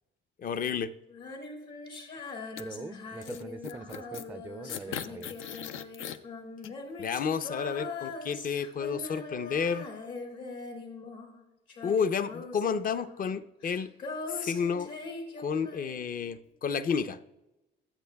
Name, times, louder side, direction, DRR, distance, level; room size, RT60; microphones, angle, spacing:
voice 1, 0.4-0.9 7.0-9.9 11.8-13.9 14.3-14.9 15.4-17.2, left 6 dB, 45° left, 12 dB, 0.6 m, -31 dB
Female singing, 1.1-11.4 11.7-16.1, left 3 dB, 65° left, 2.5 m, -42 dB
sound 1, 2.6-2.7 3.2-4.3 4.7-6.2 6.6-6.7, left 9 dB, 85° left, 0.5 m, -39 dB
voice 2, 2.6-5.4, right 3 dB, 10° right, 11 dB, 0.3 m, -43 dB
22.0 x 8.0 x 2.3 m, 0.98 s
cardioid pair, 90°, 20 cm